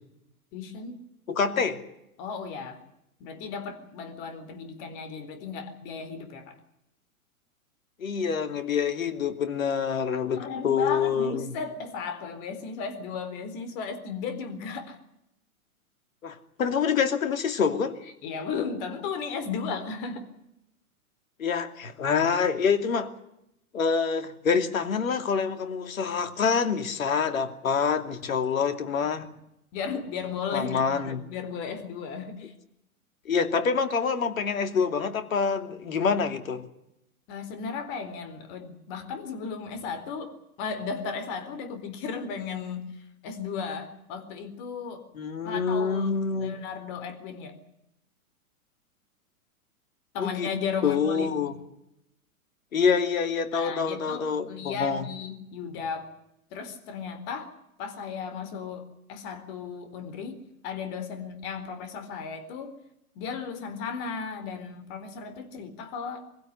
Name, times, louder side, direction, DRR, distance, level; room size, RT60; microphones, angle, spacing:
voice 1, 0.5-1.0 2.2-2.8 3.2-6.6 10.3-15.0 18.2-20.3 29.0-29.1 29.7-32.5 37.3-40.3 40.6-45.0 45.4-46.1 46.4-47.6 50.1-51.5 53.5-56.1 56.5-57.5 57.8-62.7 63.1-66.2, left 5 dB, 40° left, 4.2 m, -35 dB
voice 2, 1.3-1.8 8.0-11.5 16.2-18.0 21.4-23.1 23.7-29.3 30.5-31.2 33.2-36.6 45.2-46.5 50.2-50.5 50.8-51.5 52.7-55.1, left 6 dB, 65° left, 2.8 m, -26 dB
23.0 x 16.0 x 9.7 m
figure-of-eight pair, 110°, 43 cm